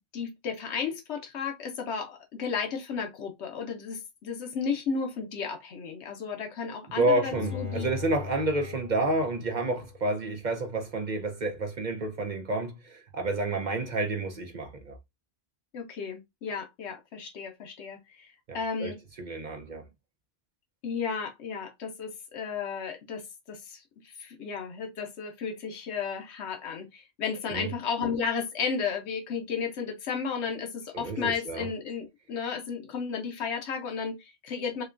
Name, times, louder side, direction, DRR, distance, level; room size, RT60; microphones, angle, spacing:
voice 1, 0.1-7.9 15.7-19.0 20.8-34.8, left 6 dB, 85° left, 1.1 m, -33 dB
voice 2, 7.0-14.9 18.5-19.9 27.5-27.7 30.9-31.7, right 2 dB, 50° right, 0.8 m, -30 dB
Bowed string instrument, 7.3-10.4 10.8-10.9, left 7 dB, 55° left, 2.2 m, -40 dB
6.4 x 2.2 x 2.5 m
omnidirectional pair, 1.1 m